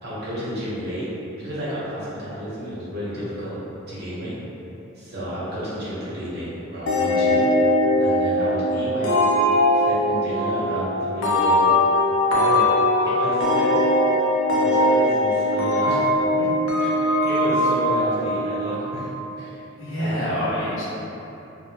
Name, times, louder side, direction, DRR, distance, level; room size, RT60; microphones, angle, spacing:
voice 1, 0.0-1.1 1.3-3.6 3.9-4.4 4.9-7.4 8.0-9.2 9.7-11.7 12.3-12.7 13.0-13.7 14.5-16.0 16.4-16.5 16.7-19.1 19.4-19.6 20.0-20.2, equal, 50° right, -10 dB, 1.0 m, -31 dB
sound 1, 6.9-19.3, left 1 dB, 80° left, 0.5 m, -20 dB
voice 2, 12.3-12.7 13.0-13.2 19.8-20.8, equal, 65° left, -10 dB, 0.9 m, -28 dB
3.5 x 2.2 x 2.9 m, 3.0 s
head